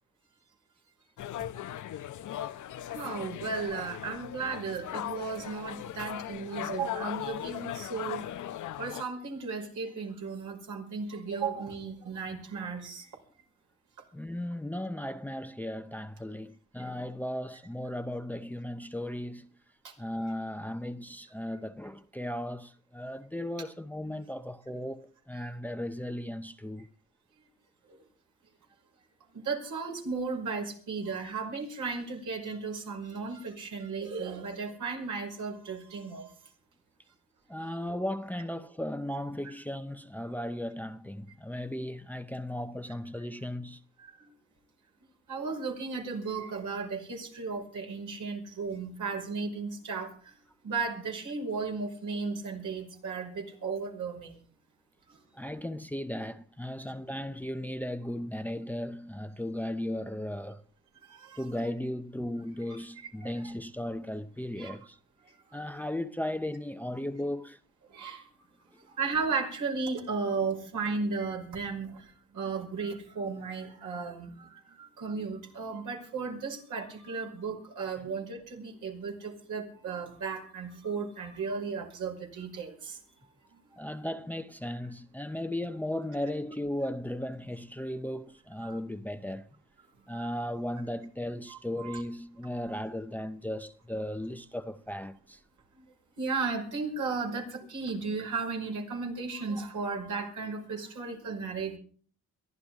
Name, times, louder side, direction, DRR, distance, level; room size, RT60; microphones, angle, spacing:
sound 1, 1.2-9.0, left 12 dB, 70° left, 0.8 m, -38 dB
voice 1, 2.9-8.3 8.8-13.1 19.8-19.9 29.3-36.3 43.2-43.3 44.0-44.3 45.3-50.3 50.6-54.4 61.1-61.5 63.2-63.3 64.6-64.8 67.9-68.2 68.9-83.0 88.6-88.8 90.1-90.3 91.5-92.0 95.8-95.9 96.2-101.8, right 4 dB, 70° right, 5.5 m, -35 dB
voice 2, 14.1-19.5 20.0-26.9 37.5-43.8 55.3-60.6 61.4-65.0 65.5-67.6 83.8-89.5 90.1-95.4, left 1 dB, 5° left, 0.7 m, -36 dB
22.5 x 14.5 x 3.7 m
cardioid pair, 95°, 31 cm